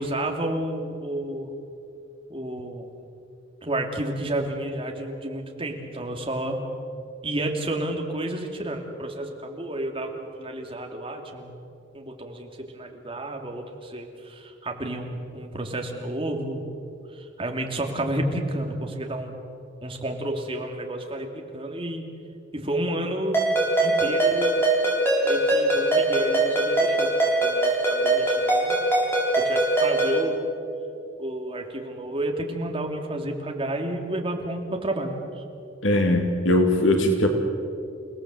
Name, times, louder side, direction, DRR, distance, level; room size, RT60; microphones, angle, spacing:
voice 1, 0.0-1.5 2.3-3.0 3.6-6.6 7.2-11.5 11.9-16.6 17.1-19.4 19.8-22.1 22.5-23.4 23.8-24.6 25.2-27.1 27.4-28.8 29.3-30.5 31.2-35.4, right 1 dB, 25° right, 2 dB, 2.8 m, -31 dB
Ringtone, 23.3-30.2, right 2 dB, 10° left, 6.1 m, -22 dB
voice 2, 35.8-37.3, left 1 dB, 80° left, 3 dB, 2.7 m, -20 dB
29.5 x 18.0 x 7.9 m, 2.6 s
head